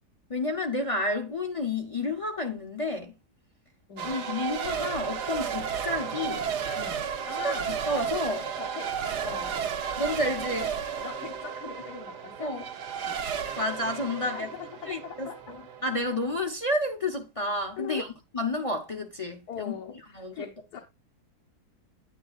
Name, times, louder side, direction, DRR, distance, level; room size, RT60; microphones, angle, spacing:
voice 1, 0.3-3.1 4.0-6.5 7.4-8.5 10.0-10.7 12.4-12.6 13.6-14.5 14.8-18.1 18.3-19.7 20.1-20.5, left 2 dB, 40° left, 0.5 m, -30 dB
Race car auto racing / Accelerating revving vroom / Mechanisms, 4.0-16.5, right 7 dB, 85° right, 1.5 m, -33 dB
voice 2, 6.8-7.7 8.6-9.7 11.0-12.6 13.0-13.2 14.2-15.4 17.8-18.1 19.5-20.8, left 8 dB, 75° left, 1.5 m, -41 dB
9.5 x 8.7 x 2.4 m
omnidirectional pair, 1.7 m